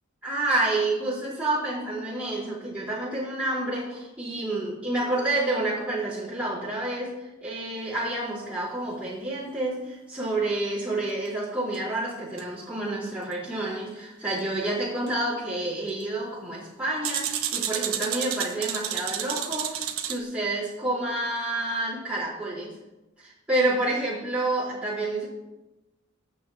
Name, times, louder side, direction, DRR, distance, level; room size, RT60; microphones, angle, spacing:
voice 1, 0.2-22.8 23.2-25.3, right 2 dB, 5° right, -9 dB, 4.5 m, -29 dB
sound 1, 11.7-11.8 12.4-12.5 15.1-15.2 17.0-20.2, right 9 dB, 85° right, 1.3 m, -30 dB
24.0 x 9.2 x 3.0 m, 1.0 s
head